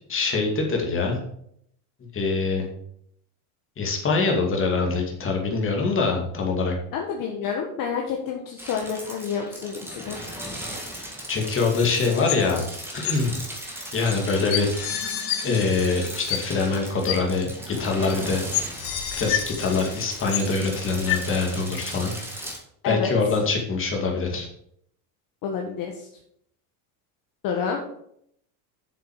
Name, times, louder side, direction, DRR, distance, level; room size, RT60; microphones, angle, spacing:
voice 1, 0.1-1.2 2.1-2.7 3.8-6.7 11.3-12.6 12.9-13.4 13.9-14.7 15.4-18.4 19.1-22.1 22.8-24.5, left 4 dB, 25° left, 1 dB, 2.5 m, -24 dB
voice 2, 6.9-10.2 22.8-23.1 25.4-26.1 27.4-27.8, left 6 dB, 45° left, 1 dB, 1.4 m, -29 dB
sound 1, 8.6-22.6, equal, 5° right, 2.0 m, -37 dB
sound 2, 11.8-12.7 13.0-13.1 14.1-14.2 14.5-16.7 17.1-17.2 18.1-18.2 18.5-20.7 21.1-21.2, left 12 dB, 85° left, 1.8 m, -30 dB
7.6 x 7.0 x 6.4 m, 0.71 s
cardioid pair, 150°, 47 cm